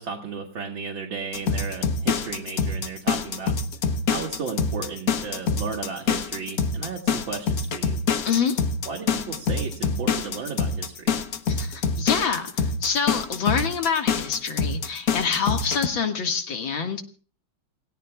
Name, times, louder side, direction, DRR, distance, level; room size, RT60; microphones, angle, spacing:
voice 1, 0.0-3.5 4.1-8.0 8.9-11.2, right 5 dB, 85° right, 0 dB, 2.8 m, -34 dB
sound 1, 1.3-15.9, left 5 dB, 55° left, 1.4 m, -25 dB
voice 2, 8.2-8.6 11.5-17.0, left 6 dB, 85° left, 5 dB, 2.6 m, -26 dB
29.0 x 17.0 x 2.4 m, 0.40 s
omnidirectional pair, 2.1 m